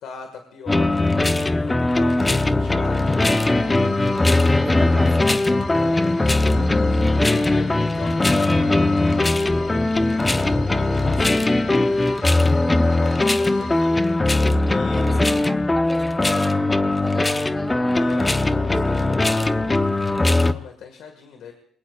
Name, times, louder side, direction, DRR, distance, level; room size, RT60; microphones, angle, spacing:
voice 1, 0.0-1.0 1.3-3.9 5.7-11.4 12.8-14.0 14.6-15.3 17.8-21.5, left 6 dB, 80° left, 5 dB, 1.8 m, -40 dB
sound 1, 0.7-20.5, left 2 dB, 20° left, 0.8 m, -20 dB
sound 2, 2.8-14.7, left 4 dB, 60° left, 4.1 m, -46 dB
voice 2, 4.6-5.6 14.9-19.0, right 1 dB, 10° right, 7 dB, 1.2 m, -35 dB
26.5 x 21.5 x 2.4 m, 0.68 s
cardioid pair, 90°, 0 cm